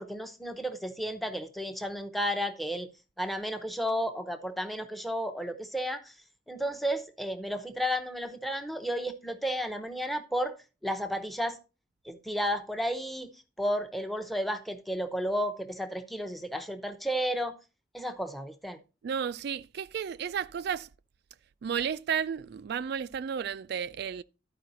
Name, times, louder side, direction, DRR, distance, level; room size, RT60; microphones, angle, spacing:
voice 1, 0.0-2.9 3.2-6.2 6.5-10.6 10.8-11.6 12.0-13.3 13.6-17.6 17.9-18.8, equal, ahead, 0.7 m, -32 dB
voice 2, 19.0-20.9 21.6-24.2, right 7 dB, 55° right, 0.3 m, -32 dB
12.0 x 4.8 x 4.0 m
head